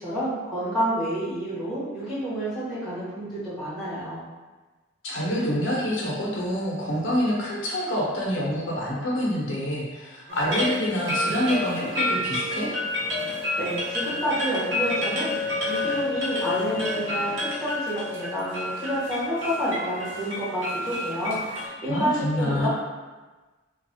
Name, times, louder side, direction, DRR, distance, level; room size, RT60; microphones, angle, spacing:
voice 1, 0.0-4.2 13.6-22.7, equal, ahead, -13 dB, 1.4 m, -29 dB
voice 2, 5.0-12.7 21.9-22.7, equal, 80° left, -5 dB, 0.7 m, -26 dB
sound 1, 10.3-21.7, left 1 dB, 70° right, 0.9 m, -29 dB
3.0 x 2.3 x 2.7 m, 1.2 s
head